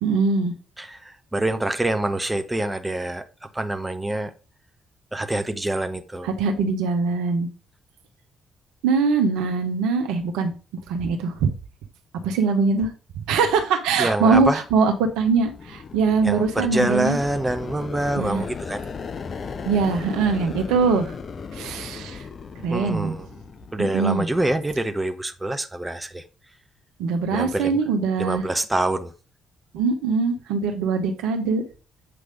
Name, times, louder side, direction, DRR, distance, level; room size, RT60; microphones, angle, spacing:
voice 1, 0.0-0.5 6.2-7.5 8.8-10.5 10.9-11.5 12.2-12.9 13.2-17.2 18.2-18.5 19.6-21.1 21.5-22.2 22.6-23.2 23.9-24.3 27.0-28.5 29.7-31.6, right 4 dB, 65° right, 0.9 m, -22 dB
voice 2, 1.3-3.2 3.5-4.3 5.1-6.3 14.0-14.6 16.2-18.8 22.7-23.3 23.7-26.2 27.3-27.7 28.2-29.1, right 1 dB, 15° right, 0.8 m, -25 dB
sound 1, 14.6-24.4, left 5 dB, 45° left, 0.6 m, -37 dB
7.7 x 3.3 x 5.1 m
figure-of-eight pair, 40°, 0 cm